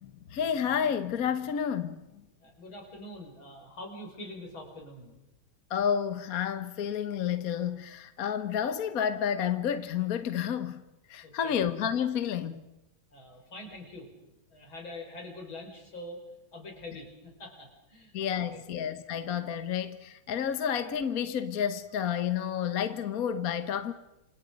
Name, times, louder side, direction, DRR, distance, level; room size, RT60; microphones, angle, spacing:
voice 1, 0.0-2.1 5.7-10.8 11.1-12.7 18.1-23.9, left 8 dB, 50° left, 1.3 m, -30 dB
voice 2, 2.4-5.1 11.2-11.6 13.1-14.1 14.5-16.2 16.5-18.6, left 1 dB, 75° left, 6.0 m, -44 dB
28.5 x 26.5 x 5.2 m
omnidirectional pair, 2.2 m